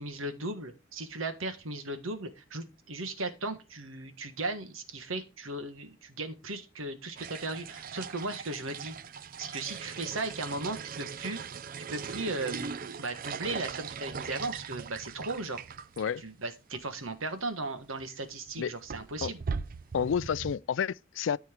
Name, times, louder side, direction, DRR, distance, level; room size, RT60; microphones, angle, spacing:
voice 1, 0.0-8.9 9.4-11.4 11.8-15.6 16.2-19.4, right 2 dB, 85° right, 1.5 m, -37 dB
Peeing + flush, 7.2-16.1 16.4-16.5 16.7-16.8 17.8-18.1 18.5-20.6, right 5 dB, 45° right, 0.4 m, -40 dB
voice 2, 19.9-21.4, left 7 dB, 65° left, 0.3 m, -30 dB
13.5 x 4.6 x 4.4 m
head